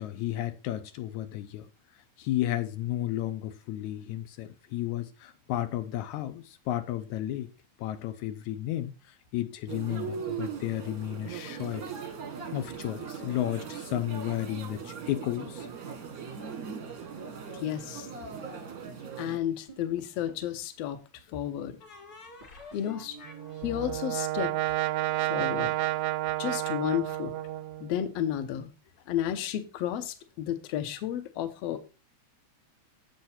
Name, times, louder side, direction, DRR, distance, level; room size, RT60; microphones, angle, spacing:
voice 1, 0.0-1.7 2.2-7.5 7.8-8.9 9.3-11.8 12.5-15.7 25.2-25.3, left 13 dB, 85° left, 2.1 m, -33 dB
sound 1, 9.7-19.4, right 6 dB, 50° right, 1.1 m, -39 dB
voice 2, 17.5-18.1 19.2-21.0 21.3-21.8 22.7-23.2 23.6-24.5 25.3-25.7 26.4-27.3 27.8-28.7 29.1-31.8, left 11 dB, 70° left, 1.9 m, -32 dB
sound 2, 19.7-20.5 21.8-25.5, left 2 dB, 35° left, 2.0 m, -47 dB
Brass instrument, 23.3-28.0, right 16 dB, 90° right, 2.0 m, -30 dB
7.8 x 6.6 x 4.2 m
omnidirectional pair, 3.3 m